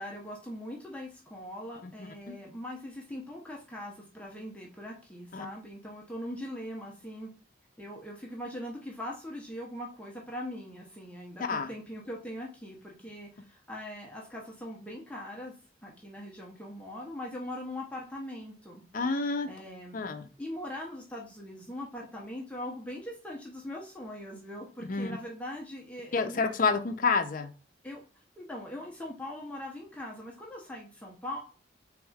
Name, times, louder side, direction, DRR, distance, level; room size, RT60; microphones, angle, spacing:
voice 1, 0.0-7.3 7.8-15.5 15.8-18.8 19.5-20.0 20.4-26.5 27.8-28.0 28.4-31.4, left 1 dB, 5° left, -2 dB, 0.7 m, -41 dB
voice 2, 18.9-19.5 19.9-20.3 24.9-25.2 26.1-27.5, left 4 dB, 45° left, 8 dB, 0.5 m, -29 dB
4.7 x 3.5 x 2.3 m, 0.39 s
head